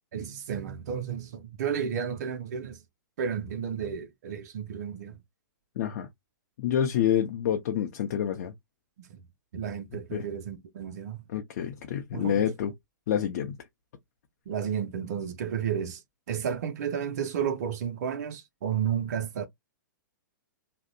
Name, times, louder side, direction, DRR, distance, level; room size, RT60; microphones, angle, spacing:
voice 1, 0.1-2.8 3.2-5.2 9.0-9.2 9.5-11.2 12.1-12.5 14.5-16.0 16.3-19.5, right 8 dB, 55° right, 0.4 m, -32 dB
voice 2, 5.8-6.1 6.6-8.5 10.1-10.3 11.3-12.7 13.1-13.6, left 9 dB, 50° left, 0.5 m, -28 dB
2.7 x 2.1 x 2.5 m
figure-of-eight pair, 110°, 10 cm